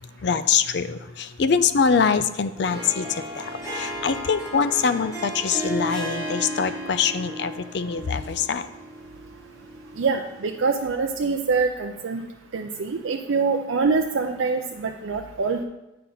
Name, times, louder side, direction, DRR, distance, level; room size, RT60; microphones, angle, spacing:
voice 1, 0.0-8.7, left 6 dB, 55° left, 12 dB, 0.4 m, -24 dB
Harp, 2.6-10.8, equal, 15° left, 1.3 m, -35 dB
voice 2, 10.0-12.3 12.5-15.6, right 4 dB, 75° right, 3 dB, 0.5 m, -25 dB
8.4 x 5.7 x 3.9 m, 0.96 s
head